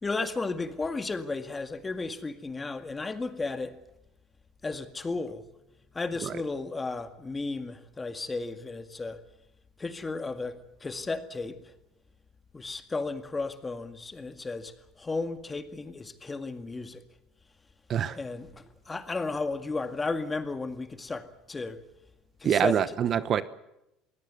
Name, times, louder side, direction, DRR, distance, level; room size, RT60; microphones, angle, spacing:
voice 1, 0.0-3.8 4.6-5.5 5.9-9.2 9.8-11.7 12.5-17.0 18.2-21.8 22.4-23.0, left 3 dB, 20° left, 2.0 m, -34 dB
voice 2, 22.4-23.4, right 9 dB, 45° right, 1.0 m, -25 dB
22.5 x 17.0 x 9.5 m
supercardioid pair, 110°, 0 cm